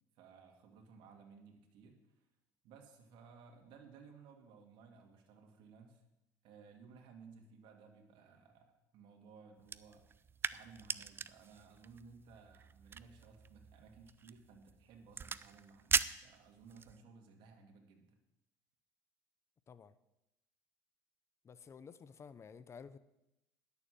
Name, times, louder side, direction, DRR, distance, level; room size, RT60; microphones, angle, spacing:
voice 1, 0.1-2.0 2.6-6.0 6.4-10.0 10.5-18.2, right 5 dB, 65° right, 2.1 m, -58 dB
sound 1, 9.6-17.0, right 6 dB, 25° right, 0.5 m, -41 dB
voice 2, 21.4-23.0, left 6 dB, 30° left, 0.7 m, -53 dB
11.0 x 7.0 x 7.7 m
supercardioid pair, 90°, 9 cm